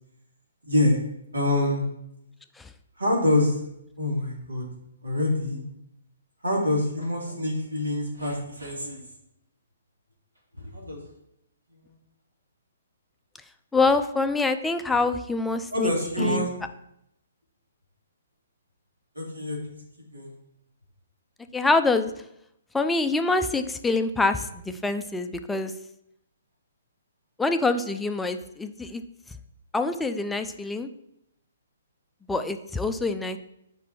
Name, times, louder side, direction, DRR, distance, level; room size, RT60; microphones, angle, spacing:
voice 1, 0.7-1.0 1.3-1.9 3.0-3.6 4.0-4.7 5.0-5.6 6.4-9.0 10.5-11.0 15.7-16.5 19.1-19.8 20.1-20.3, left 1 dB, 80° right, -2 dB, 3.0 m, -25 dB
voice 2, 13.7-15.9 16.2-16.5 21.5-22.1 22.7-25.7 27.4-29.0 29.7-30.9 32.3-33.4, left 3 dB, 5° left, 8 dB, 0.5 m, -25 dB
8.2 x 5.3 x 4.4 m, 0.80 s
figure-of-eight pair, 125°, 0 cm